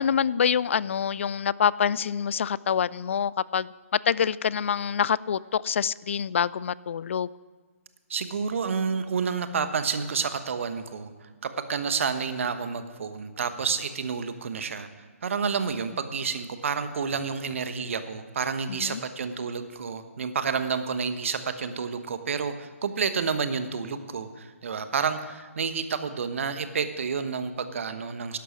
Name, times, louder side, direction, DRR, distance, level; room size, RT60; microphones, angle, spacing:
voice 1, 0.0-3.7 4.1-7.3 18.7-19.0, left 7 dB, 55° left, 21 dB, 0.4 m, -26 dB
voice 2, 8.1-11.1 11.4-14.9 15.2-28.4, right 5 dB, 55° right, 10 dB, 1.2 m, -29 dB
12.0 x 11.5 x 6.1 m, 1.4 s
figure-of-eight pair, 135°, 8 cm